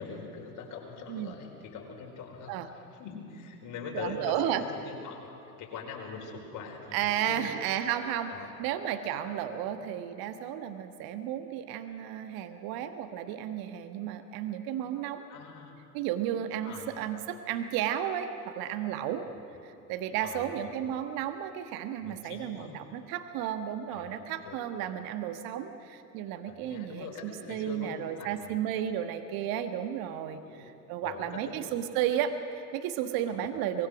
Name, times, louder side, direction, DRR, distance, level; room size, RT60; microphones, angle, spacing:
voice 1, 0.0-5.3 5.6-7.5 8.3-8.5 9.7-9.8 15.3-15.8 16.6-17.0 19.2-19.4 20.2-20.7 22.0-22.8 23.9-24.6 26.4-28.6 30.4-30.7 31.0-31.9 33.3-33.5, left 5 dB, 45° left, 1 dB, 4.8 m, -43 dB
voice 2, 3.9-4.6 6.9-8.3 8.6-15.3 15.9-19.2 19.9-30.4 30.9-33.9, right 10 dB, 55° right, 8 dB, 1.5 m, -33 dB
23.5 x 21.5 x 6.3 m, 2.8 s
hypercardioid pair, 75°, 44 cm